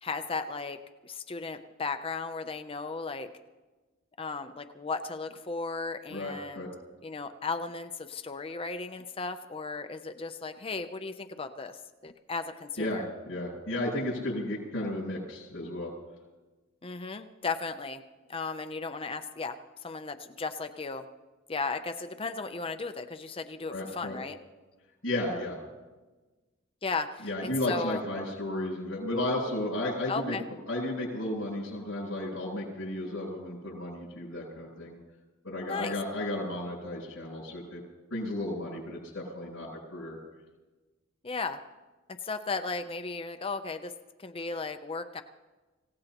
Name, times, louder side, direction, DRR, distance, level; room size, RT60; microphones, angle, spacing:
voice 1, 0.0-3.3 4.2-6.7 7.0-13.0 16.8-18.0 18.3-19.6 19.8-21.0 21.5-24.4 26.8-28.0 30.1-30.4 35.7-35.9 41.2-41.6 42.2-43.9 44.2-45.2, left 4 dB, 25° left, 8 dB, 0.6 m, -35 dB
voice 2, 6.1-6.7 12.8-15.9 23.7-24.2 25.0-25.6 27.2-30.3 30.7-35.0 35.4-37.8 38.1-40.2, left 1 dB, 65° left, -8 dB, 7.3 m, -33 dB
26.0 x 17.0 x 3.0 m, 1.2 s
head